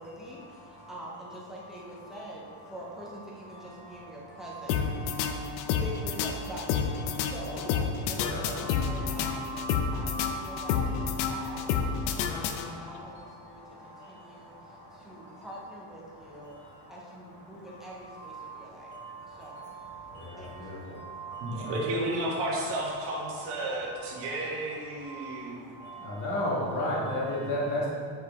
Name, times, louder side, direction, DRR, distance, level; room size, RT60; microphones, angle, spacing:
voice 1, 0.0-5.2 5.7-8.3 8.5-9.4 9.9-16.6 16.9-18.9 19.3-19.7 20.4-20.9, right 1 dB, ahead, -6 dB, 0.5 m, -45 dB
sound 1, 4.7-13.0, left 6 dB, 65° left, 0.6 m, -30 dB
voice 2, 8.2-8.7 9.3-10.7 11.1-11.4 19.6-19.8 20.1-20.8 21.1-21.8 26.0-27.9, left 1 dB, 35° left, -5 dB, 1.5 m, -33 dB
voice 3, 21.4-25.6, right 1 dB, 55° right, -3 dB, 1.4 m, -32 dB
7.9 x 4.7 x 3.5 m, 2.2 s
cardioid pair, 175°, 50 cm